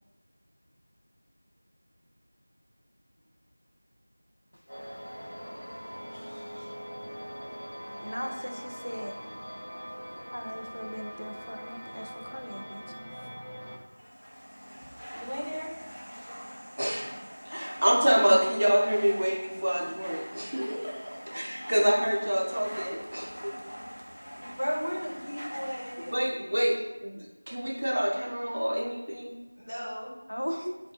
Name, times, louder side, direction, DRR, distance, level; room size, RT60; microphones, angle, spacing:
sound 1, 4.7-13.8, equal, 10° left, 1.0 m, -42 dB
voice 1, 6.1-6.7 8.0-8.1 15.1-15.7 17.5-17.8 20.6-21.0 21.3-21.5 24.4-26.6 29.6-30.1, equal, 75° left, -4 dB, 1.3 m, -37 dB
voice 2, 8.0-9.1 10.3-12.8 30.3-30.7, equal, 90° left, 3 dB, 0.6 m, -37 dB
sound 2, 13.8-26.2, equal, 10° right, 1.0 m, -44 dB
voice 3, 17.4-20.9 21.3-23.5 26.0-29.4, equal, 25° right, -2 dB, 0.4 m, -27 dB
4.8 x 2.3 x 2.6 m, 1.1 s
figure-of-eight pair, 175°, 0 cm